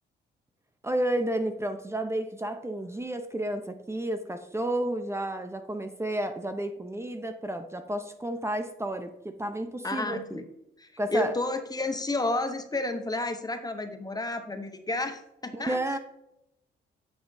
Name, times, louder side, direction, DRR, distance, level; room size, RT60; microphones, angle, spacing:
voice 1, 0.8-10.4 11.0-11.3 15.5-16.0, right 1 dB, 15° right, 7 dB, 0.8 m, -31 dB
voice 2, 9.8-10.4 11.1-16.0, left 2 dB, 20° left, 8 dB, 0.8 m, -31 dB
9.3 x 6.0 x 2.7 m, 0.82 s
cardioid pair, 90°, 20 cm